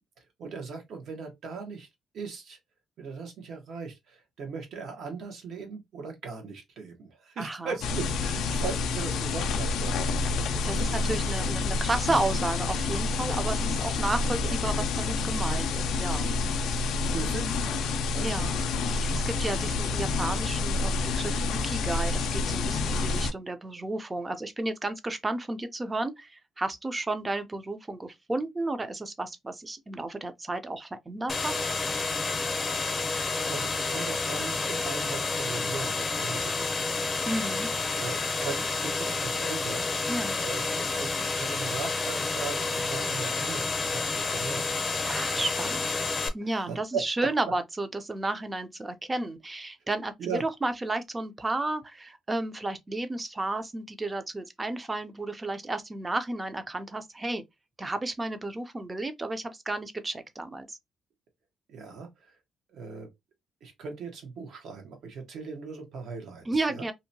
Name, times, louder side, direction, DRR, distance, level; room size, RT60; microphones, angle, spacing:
voice 1, 0.4-1.9 2.1-2.6 3.0-10.2 10.5-11.0 14.4-14.5 17.0-18.5 19.3-19.6 20.1-20.3 32.7-37.4 37.9-39.9 40.4-44.7 45.3-45.7 46.5-47.0 50.2-50.4 61.7-62.3 62.7-63.1 63.6-66.8, right 5 dB, 70° right, 1.0 m, -39 dB
voice 2, 7.4-7.8 10.6-16.3 18.2-18.6 18.9-31.5 37.3-37.7 40.1-40.4 45.1-45.9 46.3-57.4 57.8-60.8 66.5-66.9, right 2 dB, 20° right, 0.5 m, -32 dB
sound 1, 7.8-23.3, left 3 dB, 80° left, 0.4 m, -28 dB
sound 2, 31.3-46.3, left 3 dB, 30° left, 0.6 m, -30 dB
2.7 x 2.2 x 2.6 m
cardioid pair, 90°, 0 cm